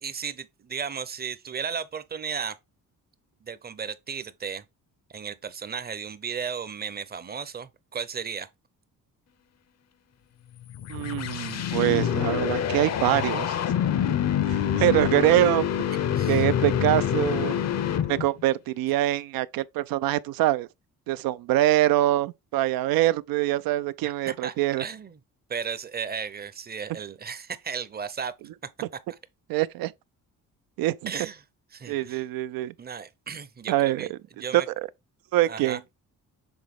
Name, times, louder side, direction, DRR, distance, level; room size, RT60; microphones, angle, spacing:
voice 1, 0.0-2.6 3.4-4.6 5.1-8.5 16.1-16.5 24.0-25.2 25.5-28.3 29.1-29.2 31.1-31.4 31.7-32.2 32.8-34.7 35.4-35.8, right 6 dB, 30° right, 0.6 m, -35 dB
sound 1, 10.6-18.4, left 9 dB, 50° left, 0.6 m, -26 dB
voice 2, 10.9-13.6 14.7-15.7 16.3-17.6 18.1-20.7 21.1-24.8 29.5-29.9 30.8-31.1 31.9-32.7 33.7-34.1 34.5-34.6 35.3-35.8, right 15 dB, 85° right, 0.5 m, -24 dB
7.2 x 3.6 x 3.6 m
cardioid pair, 105°, 34 cm